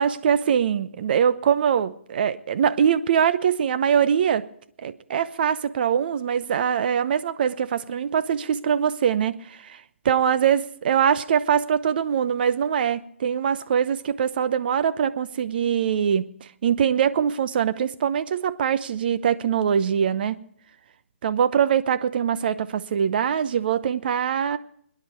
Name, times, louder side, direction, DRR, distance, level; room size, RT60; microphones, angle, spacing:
voice 1, 0.0-4.5 4.8-20.4 21.2-24.6, right 8 dB, 50° right, 0.8 m, -23 dB
23.5 x 10.5 x 4.5 m
figure-of-eight pair, 140°, 7 cm